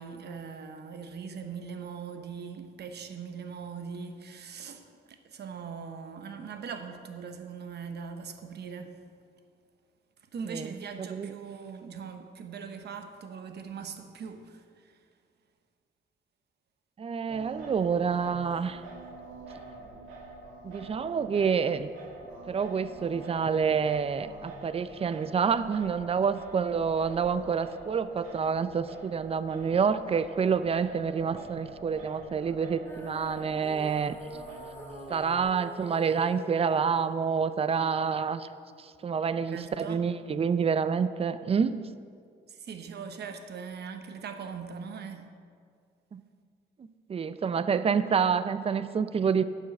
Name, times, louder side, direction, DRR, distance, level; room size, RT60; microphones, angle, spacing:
voice 1, 0.0-9.0 10.3-15.0 39.5-40.0 42.5-45.3, right 6 dB, 55° right, 1.0 m, -41 dB
voice 2, 11.0-11.3 17.0-18.8 20.6-21.9 22.5-34.2 35.1-38.5 38.8-41.8 46.1-46.2 46.8-49.4, right 6 dB, 30° right, 0.5 m, -28 dB
Singing, 17.3-35.4, right 2 dB, 90° right, 1.9 m, -46 dB
Female singing, 32.8-39.1, left 1 dB, 10° left, 0.8 m, -49 dB
9.0 x 7.3 x 6.0 m
cardioid pair, 90°, 20 cm